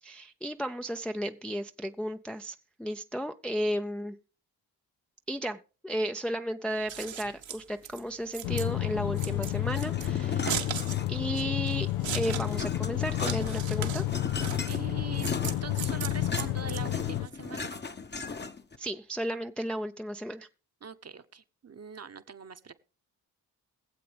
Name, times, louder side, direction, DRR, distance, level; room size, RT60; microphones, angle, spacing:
voice 1, 0.0-4.2 5.3-10.6 11.1-11.9 12.1-14.0 18.8-20.5, equal, ahead, 0.5 m, -34 dB
Scissors, 6.7-17.3, right 9 dB, 65° right, 1.4 m, -39 dB
sound 1, 8.4-17.3, left 15 dB, 85° left, 0.6 m, -31 dB
sound 2, 9.7-11.4 11.7-18.8, left 4 dB, 20° left, 0.9 m, -38 dB
voice 2, 14.7-17.7 20.8-22.7, right 6 dB, 30° right, 1.0 m, -43 dB
22.0 x 7.7 x 3.4 m
hypercardioid pair, 45°, 48 cm